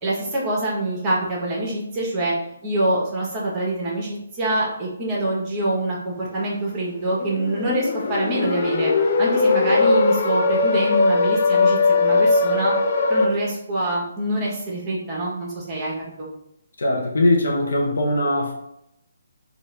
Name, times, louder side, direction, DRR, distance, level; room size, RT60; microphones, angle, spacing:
voice 1, 0.0-2.3 2.6-8.9 9.2-12.7 13.1-16.3, right 1 dB, 20° right, -4 dB, 1.2 m, -25 dB
sound 1, 7.1-13.3, left 3 dB, 50° left, 0.5 m, -19 dB
voice 2, 16.8-18.5, left 1 dB, 70° left, 1 dB, 0.9 m, -20 dB
3.5 x 2.6 x 3.3 m, 0.81 s
figure-of-eight pair, 145°, 0 cm